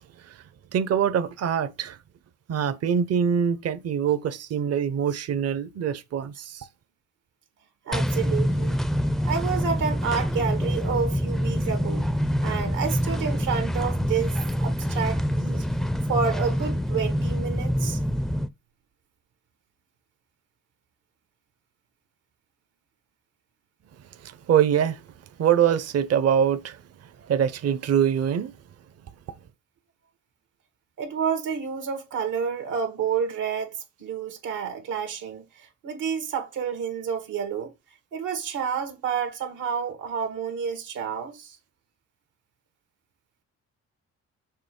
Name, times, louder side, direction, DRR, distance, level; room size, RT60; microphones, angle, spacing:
voice 1, 0.7-2.0 2.5-6.7 24.2-25.0 25.4-26.8 27.2-28.5, right 8 dB, 55° right, 0.8 m, -24 dB
sound 1, 7.9-18.5, equal, ahead, 0.5 m, -26 dB
voice 2, 7.9-8.8 9.2-12.1 12.4-18.0 31.0-37.7 38.1-41.6, right 6 dB, 85° right, 1.8 m, -29 dB
6.7 x 3.1 x 5.2 m
cardioid pair, 90°, 30 cm